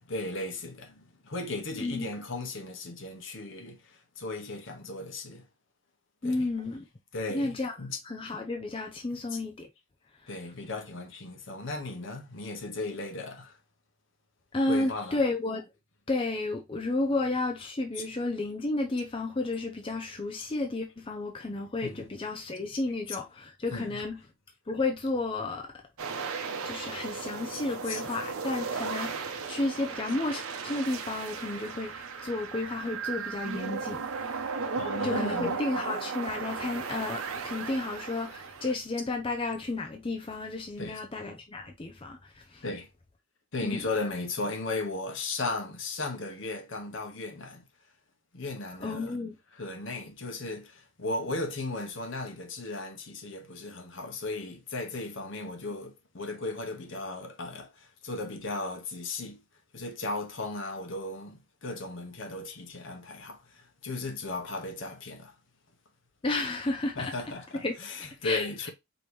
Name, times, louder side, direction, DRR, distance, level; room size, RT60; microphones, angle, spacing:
voice 1, 0.1-5.4 6.2-6.5 7.1-8.0 9.3-9.4 10.3-13.5 14.7-15.2 18.0-18.1 21.8-22.1 23.7-24.0 27.9-28.0 34.8-35.5 40.8-41.0 42.6-42.9 43.5-47.6 48.3-49.2 49.6-59.4 59.7-65.3 67.0-68.7, left 2 dB, 60° left, 1.0 m, -36 dB
voice 2, 6.2-6.9 7.3-7.7 8.0-9.7 10.2-10.3 14.5-15.6 16.1-24.2 24.7-25.7 26.6-34.0 35.0-42.6 43.6-43.8 48.8-49.3 66.2-67.1 67.5-67.8 68.2-68.7, left 2 dB, 25° left, 0.5 m, -32 dB
sound 1, 26.0-38.7, right 5 dB, 85° right, 0.8 m, -35 dB
5.1 x 3.0 x 3.1 m
head